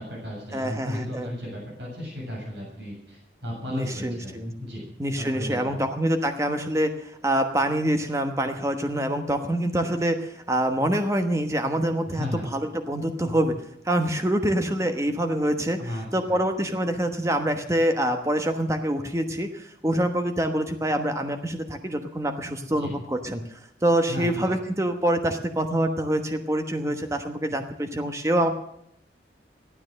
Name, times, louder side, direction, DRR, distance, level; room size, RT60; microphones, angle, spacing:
voice 1, 0.0-4.8 5.2-5.8 12.1-12.4 15.8-16.4 22.7-22.9 24.1-24.6, left 1 dB, 70° right, -3 dB, 7.4 m, -35 dB
voice 2, 0.5-1.3 3.7-4.5 5.0-13.5 13.8-23.4 23.8-28.5, right 1 dB, 15° right, 6 dB, 1.1 m, -25 dB
15.0 x 12.0 x 6.4 m, 0.74 s
head